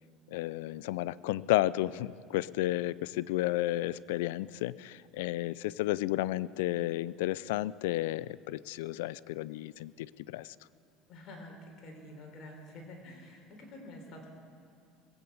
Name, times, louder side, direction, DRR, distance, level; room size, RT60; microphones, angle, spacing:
voice 1, 0.3-10.6, left 16 dB, 85° left, 20 dB, 0.3 m, -32 dB
voice 2, 11.1-14.3, left 1 dB, 50° left, 1 dB, 3.7 m, -48 dB
21.0 x 8.7 x 6.9 m, 2.3 s
supercardioid pair, 110°, 0 cm